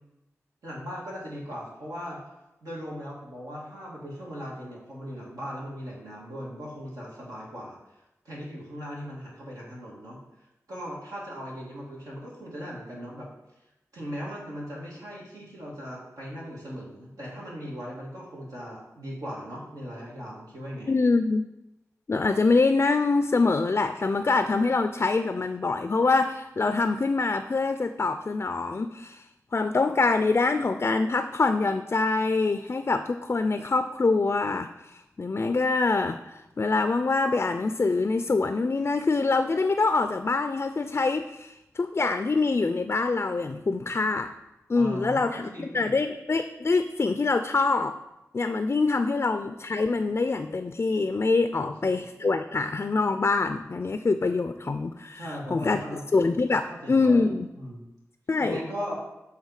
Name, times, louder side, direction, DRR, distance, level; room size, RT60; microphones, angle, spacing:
voice 1, 0.6-2.2 2.6-7.8 8.3-10.2 10.7-13.3 13.9-21.0 44.7-45.9 51.5-51.7 55.1-56.0 56.5-57.2 57.6-57.9 58.4-59.0, equal, 90° right, -5 dB, 1.9 m, -38 dB
voice 2, 20.9-21.4 22.1-29.3 29.5-44.3 44.7-47.9 48.3-55.8 56.1-57.5 58.3-58.6, left 3 dB, 45° left, 9 dB, 0.3 m, -25 dB
7.4 x 3.5 x 4.8 m, 0.93 s
cardioid pair, 50°, 6 cm